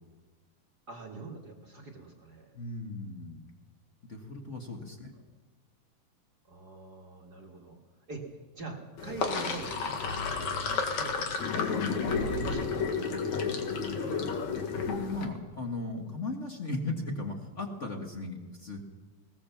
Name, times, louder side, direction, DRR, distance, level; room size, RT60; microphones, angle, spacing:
voice 1, 0.9-2.5 6.5-7.8 8.1-8.2 8.5-14.3, right 3 dB, 40° right, 1 dB, 1.7 m, -44 dB
voice 2, 2.5-3.5 4.0-5.1 14.7-18.8, left 2 dB, 35° left, 3 dB, 1.1 m, -37 dB
Sink (filling or washing), 9.0-15.2, left 5 dB, 60° left, 2.9 m, -31 dB
20.5 x 18.0 x 7.2 m, 1.3 s
omnidirectional pair, 3.9 m